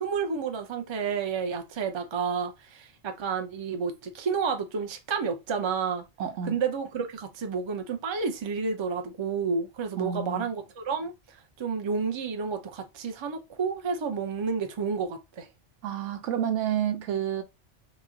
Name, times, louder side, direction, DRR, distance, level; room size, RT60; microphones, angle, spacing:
voice 1, 0.0-6.0 6.4-11.1 11.6-15.5, right 5 dB, 40° right, 0.4 m, -30 dB
voice 2, 6.2-6.6 10.0-10.5 15.8-17.4, right 9 dB, 90° right, 0.9 m, -29 dB
3.1 x 2.1 x 3.6 m
omnidirectional pair, 1.2 m